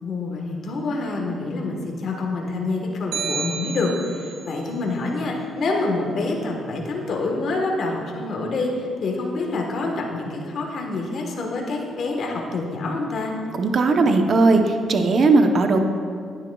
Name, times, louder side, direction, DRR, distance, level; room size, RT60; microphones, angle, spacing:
voice 1, 0.0-13.3, left 3 dB, 60° left, 0 dB, 1.2 m, -26 dB
sound 1, 3.1-4.5, right 6 dB, 90° right, 1.2 m, -30 dB
voice 2, 13.6-15.8, right 3 dB, 50° right, 5 dB, 0.7 m, -17 dB
10.0 x 10.0 x 2.3 m, 2.2 s
cardioid pair, 90°, 0 cm